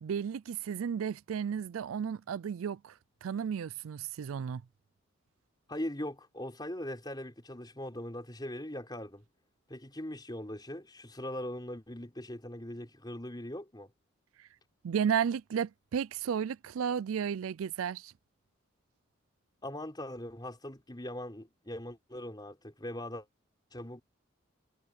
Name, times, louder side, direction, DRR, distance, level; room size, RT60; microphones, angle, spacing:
voice 1, 0.0-2.9 3.2-4.6 14.8-18.1, right 7 dB, 85° right, 0.4 m, -33 dB
voice 2, 5.7-9.2 9.7-13.9 19.6-23.3 23.7-24.0, left 1 dB, 20° left, 4.5 m, -40 dB
head